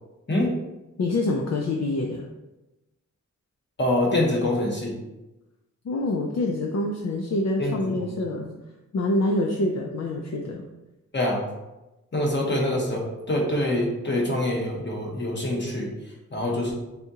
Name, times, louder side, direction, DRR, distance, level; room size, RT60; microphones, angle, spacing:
voice 1, 1.0-2.3 5.8-8.5 8.9-10.6, left 2 dB, 60° left, 0 dB, 0.5 m, -26 dB
voice 2, 3.8-5.0 7.6-8.1 11.1-11.4 12.1-15.9 16.3-16.7, left 1 dB, 35° left, -1 dB, 1.1 m, -25 dB
4.1 x 3.6 x 2.8 m, 1.0 s
cardioid pair, 75°, 31 cm